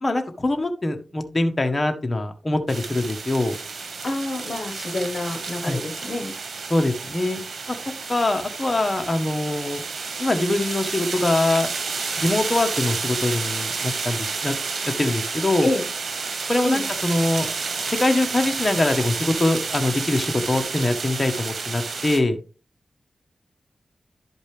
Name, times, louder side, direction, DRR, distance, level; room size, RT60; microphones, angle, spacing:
voice 1, 0.0-3.5 5.6-5.8 6.7-7.4 8.1-9.8 10.2-11.7 12.2-14.5 15.0-15.7 16.5-17.5 18.0-22.4, left 2 dB, 30° left, 5 dB, 1.3 m, -23 dB
sound 1, 2.7-22.2, right 4 dB, 80° right, 1.5 m, -30 dB
voice 2, 4.0-6.4 15.6-15.9 16.6-16.8, left 2 dB, 60° left, 7 dB, 1.3 m, -27 dB
11.5 x 5.2 x 3.4 m, 0.35 s
cardioid pair, 50°, 0 cm